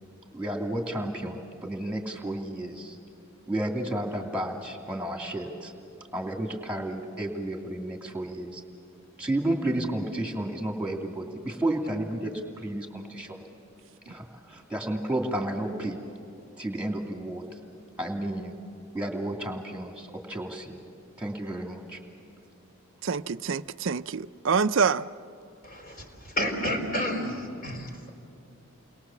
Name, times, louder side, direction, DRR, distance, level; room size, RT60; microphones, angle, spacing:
voice 1, 0.3-1.4 1.6-3.0 3.5-5.7 6.1-8.6 9.2-13.4 14.1-16.0 16.6-17.5 18.0-18.5 18.9-20.8 21.2-22.0, right 1 dB, 5° right, 2.6 m, -32 dB
voice 2, 23.0-25.1, right 5 dB, 60° right, 0.5 m, -26 dB
voice 3, 25.6-28.1, equal, 40° left, 4.3 m, -31 dB
29.5 x 22.0 x 7.2 m
head